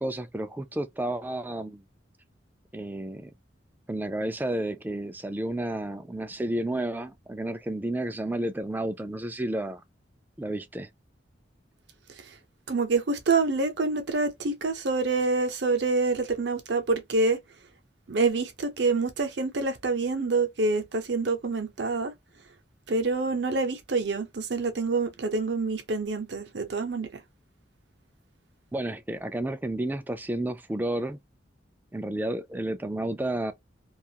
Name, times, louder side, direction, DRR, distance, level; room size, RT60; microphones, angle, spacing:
voice 1, 0.0-1.8 2.7-3.3 3.9-9.8 10.4-10.9 28.7-31.2 31.9-33.5, right 1 dB, 10° right, 0.3 m, -31 dB
voice 2, 12.7-17.4 18.1-22.1 22.9-27.1, right 3 dB, 60° right, 0.7 m, -26 dB
2.4 x 2.4 x 2.8 m
head